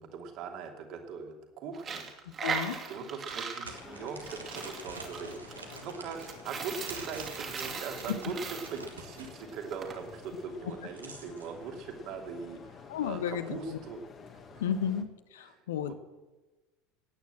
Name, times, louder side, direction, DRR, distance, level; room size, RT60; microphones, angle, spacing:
voice 1, 0.1-2.1 2.9-14.0 14.3-14.6 15.4-15.9, right 5 dB, 45° right, 3 dB, 2.8 m, -41 dB
Coin (dropping), 1.7-10.0, right 5 dB, 30° right, 2.6 m, -39 dB
sound 1, 2.3-2.4 3.3-9.3 10.6-11.5, right 3 dB, 80° right, 2.1 m, -47 dB
voice 2, 2.4-2.8 8.1-8.2 12.9-13.8 14.6-15.1 15.3-15.9, left 8 dB, 65° left, 12 dB, 1.1 m, -32 dB
sound 2, 3.7-15.0, left 5 dB, 30° left, 1.8 m, -50 dB
18.0 x 9.6 x 7.7 m, 1.2 s
figure-of-eight pair, 70°, 0 cm